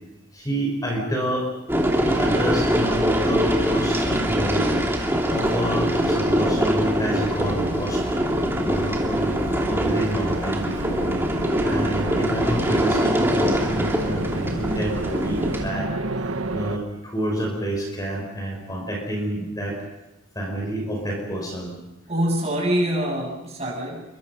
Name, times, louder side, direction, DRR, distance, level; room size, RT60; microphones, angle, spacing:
voice 1, 0.3-1.5 2.0-4.7 5.3-8.0 8.6-9.4 9.6-11.0 11.6-15.9 16.5-19.8 20.4-21.7, right 1 dB, 15° left, 1 dB, 5.2 m, -28 dB
sound 1, 1.7-15.7, equal, 10° right, 2.8 m, -23 dB
sound 2, 5.8-16.8, right 2 dB, 85° right, 1.5 m, -32 dB
voice 2, 22.1-24.2, right 1 dB, 30° right, -1 dB, 7.9 m, -25 dB
28.5 x 24.5 x 5.6 m, 0.95 s
head